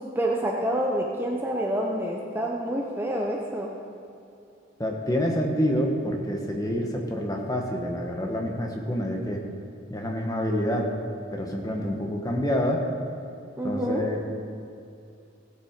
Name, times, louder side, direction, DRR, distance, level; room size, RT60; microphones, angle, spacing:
voice 1, 0.0-3.7 13.6-14.0, right 1 dB, 10° right, -1 dB, 0.7 m, -27 dB
voice 2, 4.8-9.4 9.9-10.9 11.3-12.8 13.6-14.2, equal, 20° left, 1 dB, 1.3 m, -27 dB
16.5 x 7.6 x 5.2 m, 2.7 s
head